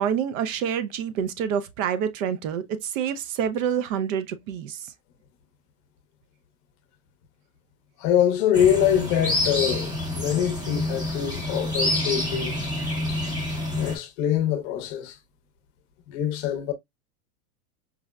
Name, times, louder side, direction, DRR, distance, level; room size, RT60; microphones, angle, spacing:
voice 1, 0.0-4.9, right 8 dB, 55° right, 0.5 m, -27 dB
voice 2, 8.0-12.7 13.8-15.2 16.1-16.7, left 10 dB, 45° left, 0.7 m, -24 dB
sound 1, 8.5-14.0, left 1 dB, 10° right, 0.7 m, -28 dB
4.6 x 2.0 x 2.2 m
supercardioid pair, 140°, 48 cm